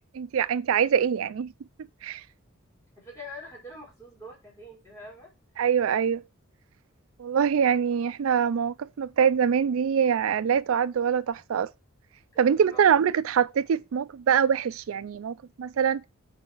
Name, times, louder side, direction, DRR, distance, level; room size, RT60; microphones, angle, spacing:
voice 1, 0.1-1.5 2.0-2.2 5.6-6.2 7.2-11.7 12.4-16.1, right 7 dB, 75° right, 0.4 m, -24 dB
voice 2, 3.0-5.3 12.3-12.8, left 1 dB, 15° left, 4.4 m, -44 dB
9.5 x 4.9 x 4.5 m
head